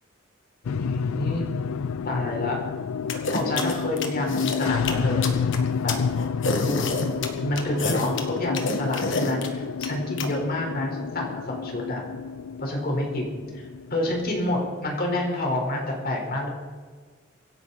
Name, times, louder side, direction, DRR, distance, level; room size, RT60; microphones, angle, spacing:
sound 1, 0.6-15.3, left 6 dB, 90° left, 0.4 m, -30 dB
voice 1, 0.6-1.5 2.0-2.6 3.1-5.3 5.8-6.0 6.6-6.8 7.2-12.0 12.6-16.5, left 1 dB, 50° left, 0 dB, 4.5 m, -28 dB
sound 2, 3.1-10.3, left 3 dB, 65° left, 1.9 m, -28 dB
25.5 x 11.0 x 4.2 m, 1.5 s
head